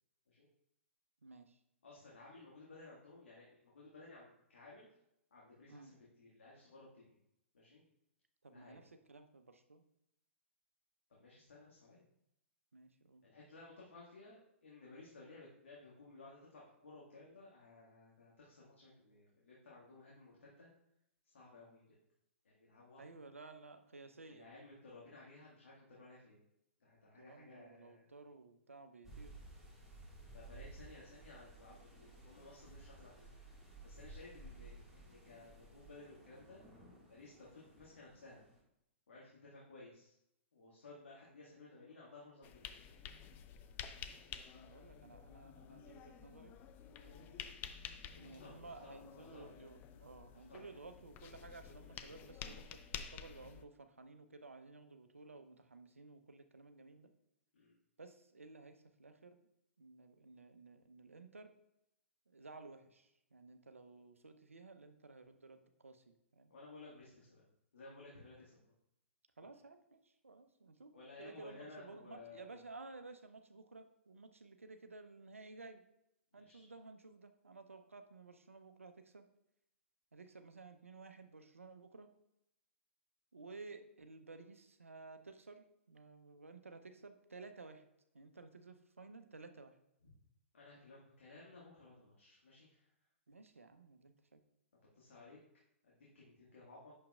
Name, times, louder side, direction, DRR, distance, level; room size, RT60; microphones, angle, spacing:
voice 1, 1.2-1.6 5.7-5.9 8.4-9.8 12.7-13.2 23.0-24.5 27.2-29.3 44.5-46.6 47.0-47.5 48.2-57.1 58.0-59.5 59.8-61.5 62.3-66.5 69.4-70.9 71.2-75.8 76.3-79.3 80.1-82.1 83.3-87.8 88.1-89.8 93.3-94.4, right 3 dB, 80° right, 8 dB, 0.7 m, -55 dB
voice 2, 1.8-4.9 5.3-7.1 7.5-7.8 8.5-8.8 11.2-12.1 13.2-20.7 21.2-21.9 22.4-23.0 24.3-26.4 26.8-28.1 30.3-36.7 37.0-38.5 39.1-40.1 40.5-43.0 48.2-49.5 50.3-50.7 57.5-57.7 66.5-68.6 70.9-72.6 76.3-76.7 90.0-90.1 90.5-92.9 94.9-95.4 95.8-96.9, left 3 dB, 65° left, -5 dB, 1.8 m, -57 dB
sound 1, 29.0-38.6, right 2 dB, 5° right, 1.8 m, -56 dB
sound 2, 42.4-53.7, left 8 dB, 25° left, 0.5 m, -51 dB
8.6 x 6.4 x 2.4 m, 0.81 s
figure-of-eight pair, 115°, 7 cm